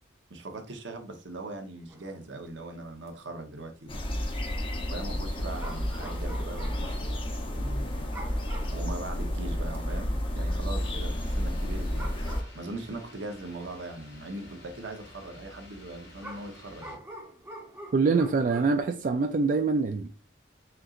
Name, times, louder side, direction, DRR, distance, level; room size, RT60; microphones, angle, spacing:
voice 1, 0.3-4.0 4.9-8.0 8.7-12.1 12.5-17.0, right 2 dB, 80° right, 0.9 m, -40 dB
sound 1, 1.9-2.2 2.5-2.6 2.8-3.1 3.9-4.1 5.6-7.0 7.3-7.4 8.1-8.9 9.3-9.4 9.7-10.3 11.6-11.7 11.9-12.9 13.7-13.8 16.2-18.8, right 1 dB, 15° right, 0.8 m, -45 dB
sound 2, 3.9-12.4, equal, 30° left, 0.6 m, -31 dB
sound 3, 10.7-16.9, left 1 dB, 90° left, 2.1 m, -51 dB
voice 2, 17.9-20.1, right 4 dB, 45° right, 0.3 m, -24 dB
4.4 x 3.7 x 2.4 m
head